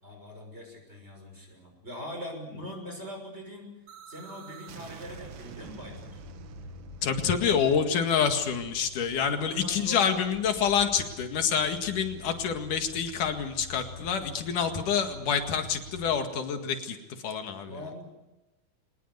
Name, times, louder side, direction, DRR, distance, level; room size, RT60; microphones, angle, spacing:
voice 1, 0.0-3.8 4.1-6.2 9.2-10.1 17.6-18.2, left 1 dB, 20° right, 2 dB, 6.5 m, -42 dB
sound 1, 3.9-9.6, right 8 dB, 60° right, 1.6 m, -49 dB
sound 2, 5.0-16.2, left 3 dB, 20° left, 7.2 m, -48 dB
voice 2, 7.0-17.9, left 7 dB, 85° left, 6 dB, 3.5 m, -27 dB
24.5 x 20.0 x 8.1 m, 1.0 s
omnidirectional pair, 3.5 m